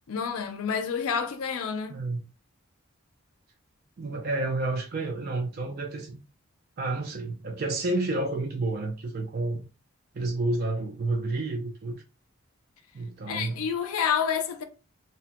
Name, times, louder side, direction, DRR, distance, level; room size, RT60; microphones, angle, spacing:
voice 1, 0.1-2.0 13.3-14.6, left 7 dB, 90° left, 0.4 m, -29 dB
voice 2, 1.9-2.2 4.0-6.2 6.8-9.6 10.1-12.0 12.9-13.6, right 2 dB, 45° right, 0.4 m, -30 dB
2.8 x 2.1 x 2.8 m
head